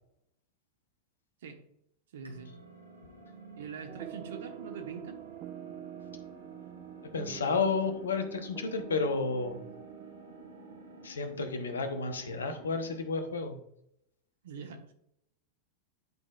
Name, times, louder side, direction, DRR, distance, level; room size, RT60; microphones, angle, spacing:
voice 1, 2.1-2.5 3.6-5.2 14.4-14.8, right 5 dB, 60° right, 6 dB, 1.1 m, -43 dB
sound 1, 2.2-13.1, right 1 dB, 80° right, 1.3 m, -53 dB
sound 2, 3.9-11.1, right 11 dB, 35° right, 0.3 m, -46 dB
voice 2, 7.1-9.6 11.0-13.6, left 4 dB, 70° left, 7 dB, 0.9 m, -31 dB
10.5 x 4.1 x 2.4 m, 0.76 s
figure-of-eight pair, 90°, 0 cm